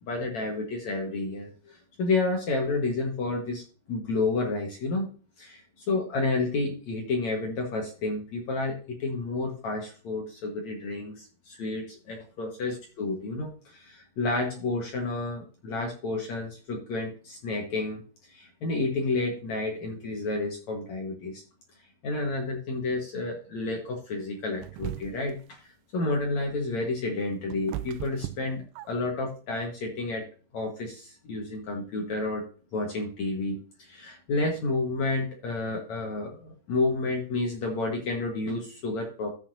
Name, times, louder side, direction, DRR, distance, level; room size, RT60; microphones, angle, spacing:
voice 1, 0.0-3.6 3.9-5.1 5.4-5.6 5.9-18.0 18.3-21.4 22.0-25.6 25.9-30.3 30.5-32.5 32.7-39.3, left 3 dB, 65° left, 1 dB, 1.8 m, -30 dB
sound 1, 24.6-25.4 26.9-29.2, right 16 dB, 80° right, 2.7 m, -37 dB
14.0 x 7.0 x 2.7 m, 0.38 s
omnidirectional pair, 5.5 m